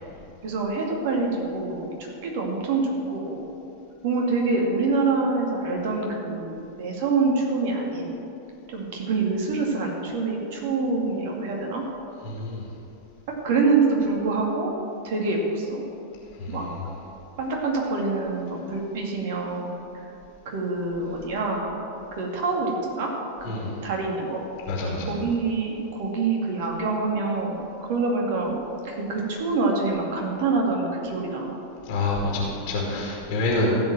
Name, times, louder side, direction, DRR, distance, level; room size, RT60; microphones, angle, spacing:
voice 1, 0.4-3.4 4.0-8.2 8.7-11.8 13.4-14.7 15.0-15.8 16.5-16.7 17.4-19.7 19.9-20.0 20.5-21.8 22.1-23.1 23.4-24.4 25.0-28.6 28.8-31.6, right 3 dB, 50° right, 0 dB, 2.3 m, -26 dB
voice 2, 12.2-12.6 23.5-23.7 24.7-25.1 31.9-33.8, left 2 dB, 50° left, -3 dB, 2.5 m, -26 dB
15.0 x 5.3 x 7.6 m, 2.8 s
figure-of-eight pair, 90°, 0 cm